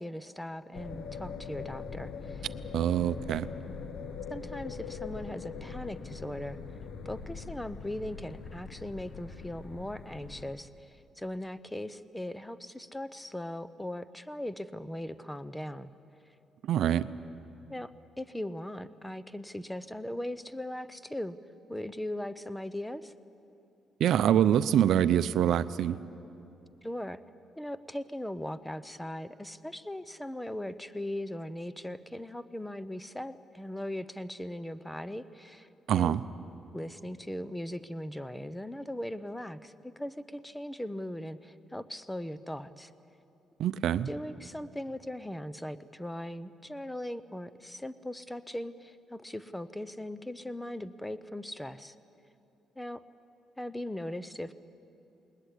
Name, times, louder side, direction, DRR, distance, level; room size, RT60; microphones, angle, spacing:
voice 1, 0.0-2.5 4.3-6.6 7.0-15.9 17.7-21.4 21.7-23.1 26.8-27.2 27.6-36.2 36.7-42.9 44.1-51.9 52.8-53.0 53.6-54.5, left 1 dB, 10° left, 14 dB, 0.8 m, -39 dB
sound 1, 0.7-10.5, left 5 dB, 70° left, 1.2 m, -42 dB
voice 2, 2.7-3.5 16.7-17.1 24.0-26.0 35.9-36.2 43.6-44.1, right 10 dB, 75° right, 14 dB, 0.6 m, -25 dB
20.5 x 20.0 x 8.5 m, 2.8 s
cardioid pair, 90°, 0 cm